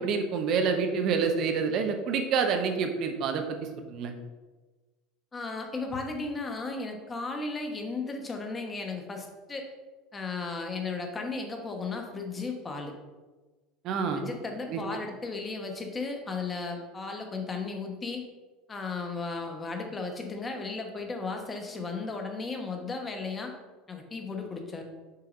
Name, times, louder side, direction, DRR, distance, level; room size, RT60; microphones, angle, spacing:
voice 1, 0.0-3.4 3.9-4.1 13.8-14.2 14.7-14.8, right 5 dB, 55° right, 5 dB, 0.9 m, -27 dB
voice 2, 5.3-9.7 10.1-12.9 14.1-18.2 18.7-23.5 23.9-24.8, left 3 dB, 20° left, 3 dB, 1.1 m, -35 dB
6.8 x 2.8 x 5.1 m, 1.2 s
supercardioid pair, 115°, 0 cm